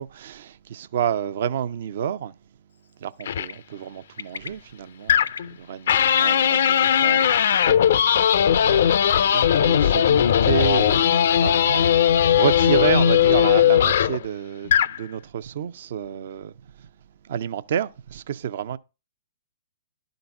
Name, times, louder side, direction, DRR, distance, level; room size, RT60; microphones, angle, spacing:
voice 1, 0.0-2.3 3.0-5.2 5.5-7.3 7.6-11.9 12.4-16.5 17.3-18.8, right 9 dB, 60° right, 0.5 m, -29 dB
Bird, 3.2-3.5 4.2-4.5 5.1-5.4 5.9-7.2, left 6 dB, 85° left, 0.8 m, -34 dB
sound 1, 3.3-3.5 5.1-5.5 5.9-14.2 14.6-15.0, left 9 dB, 65° left, 0.4 m, -18 dB
11.5 x 3.9 x 5.8 m
hypercardioid pair, 125°, 0 cm